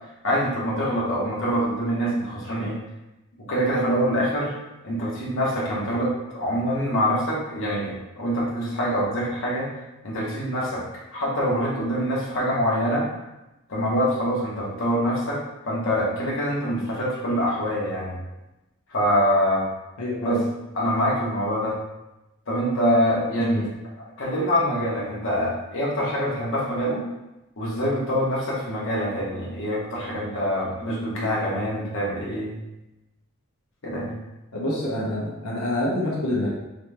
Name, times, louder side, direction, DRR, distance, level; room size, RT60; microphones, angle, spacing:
voice 1, 0.2-2.8 3.5-4.5 4.8-9.7 10.0-10.8 11.1-13.0 13.7-15.4 15.7-18.2 18.9-19.7 20.2-20.4 20.7-21.7 22.5-23.7 24.2-27.0 27.6-32.5 33.8-34.1, equal, 60° left, -5 dB, 1.1 m, -25 dB
voice 2, 20.0-20.4 23.4-23.6 34.5-36.5, left 1 dB, 90° left, -5 dB, 1.0 m, -27 dB
4.0 x 2.9 x 3.4 m, 0.97 s
head